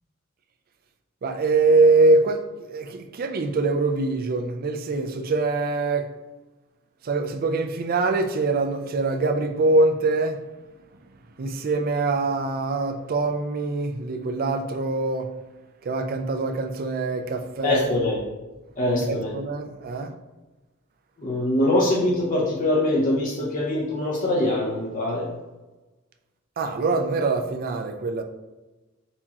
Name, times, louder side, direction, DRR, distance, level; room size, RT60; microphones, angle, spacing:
voice 1, 1.2-2.4 2.7-6.1 7.0-10.4 11.4-15.3 15.8-17.9 19.1-20.1 26.6-28.2, right 3 dB, 45° right, 5 dB, 0.4 m, -23 dB
voice 2, 17.6-18.2 18.8-19.3 21.2-25.3, left 1 dB, 40° left, -4 dB, 0.7 m, -23 dB
4.3 x 4.2 x 2.9 m, 1.1 s
head